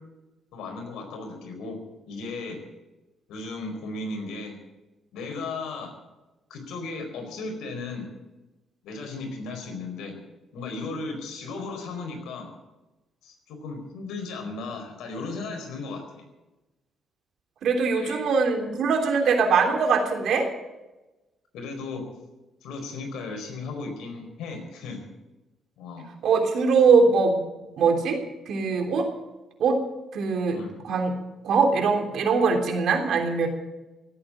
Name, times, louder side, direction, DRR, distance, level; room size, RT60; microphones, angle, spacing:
voice 1, 0.5-1.8 2.1-2.6 3.3-4.6 5.1-5.9 6.5-8.1 8.8-10.2 10.5-12.5 13.2-16.0 17.9-18.3 21.5-22.0 22.6-25.0 25.8-26.1 30.5-30.8, left 3 dB, 85° left, 4 dB, 4.5 m, -35 dB
voice 2, 17.6-20.5 26.2-27.4 27.8-28.2 28.5-29.1 29.6-29.8 30.1-30.6 30.8-31.1 31.4-33.5, right 5 dB, 70° right, 3 dB, 3.3 m, -21 dB
17.0 x 8.9 x 8.7 m, 1.1 s
cardioid pair, 90°, 0 cm